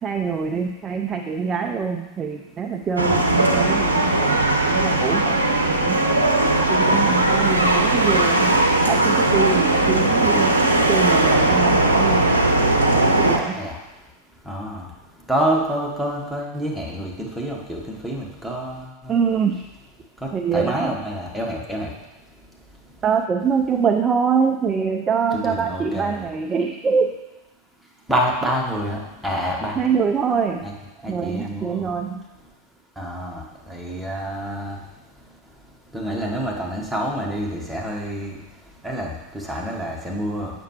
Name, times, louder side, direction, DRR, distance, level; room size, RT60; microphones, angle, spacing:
voice 1, 0.0-6.0 6.7-8.5 8.9-10.6 10.9-12.3 13.2-13.6 19.1-19.6 20.3-20.9 23.0-27.1 29.8-30.7 31.0-32.3, right 6 dB, 20° right, 5 dB, 0.4 m, -24 dB
sound 1, 3.0-13.4, right 2 dB, 80° right, 0.7 m, -18 dB
voice 2, 14.5-14.9 15.3-19.2 20.2-21.9 25.3-26.3 28.1-29.8 30.6-30.7 31.0-31.9 33.0-34.8 35.9-38.4 38.8-40.5, equal, ahead, -3 dB, 1.2 m, -27 dB
7.2 x 5.9 x 3.0 m, 1.0 s
figure-of-eight pair, 90°, 0 cm